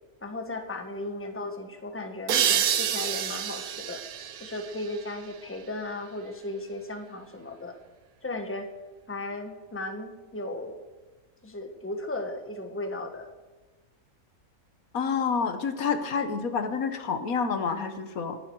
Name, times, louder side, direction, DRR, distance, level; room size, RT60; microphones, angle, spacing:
voice 1, 0.2-4.0 4.4-7.7 8.2-8.7 9.1-10.8 11.4-13.3, left 2 dB, 10° left, 5 dB, 1.3 m, -36 dB
sound 1, 2.3-5.7, right 9 dB, 90° right, 1.3 m, -29 dB
voice 2, 14.9-18.4, left 5 dB, 75° left, 9 dB, 1.6 m, -28 dB
19.5 x 11.5 x 4.7 m, 1.2 s
omnidirectional pair, 1.5 m